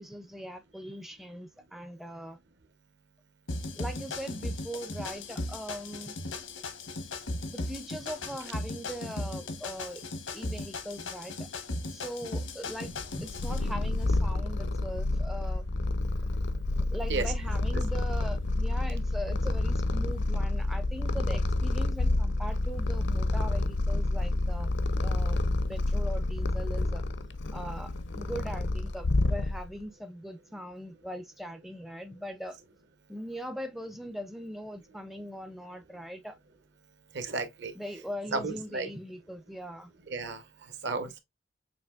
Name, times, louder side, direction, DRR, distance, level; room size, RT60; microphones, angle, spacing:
voice 1, 0.0-2.4 3.7-6.1 7.5-10.0 10.3-11.5 11.9-15.7 16.9-24.7 25.0-27.0 27.5-32.6 33.1-36.4 37.7-39.9, equal, ahead, 0.4 m, -40 dB
sound 1, 3.5-13.6, left 2 dB, 90° left, 1.0 m, -37 dB
Purr, 13.0-29.8, left 2 dB, 65° left, 0.5 m, -29 dB
voice 2, 37.1-37.7 38.3-38.9 40.1-40.4 40.8-41.2, right 3 dB, 65° right, 0.9 m, -32 dB
6.7 x 2.9 x 2.3 m
head